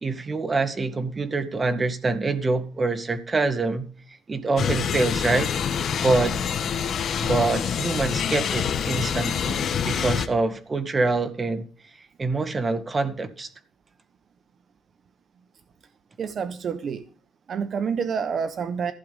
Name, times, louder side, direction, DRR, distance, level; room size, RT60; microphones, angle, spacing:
voice 1, 0.0-3.9 4.3-5.5 6.0-6.4 7.2-11.7 12.2-13.5, right 3 dB, 30° right, 1.9 m, -25 dB
sound 1, 4.6-10.3, left 7 dB, 60° left, 1.7 m, -26 dB
voice 2, 16.2-17.0 17.5-18.9, right 6 dB, 55° right, 1.1 m, -28 dB
15.5 x 7.8 x 5.3 m
cardioid pair, 90°, 0 cm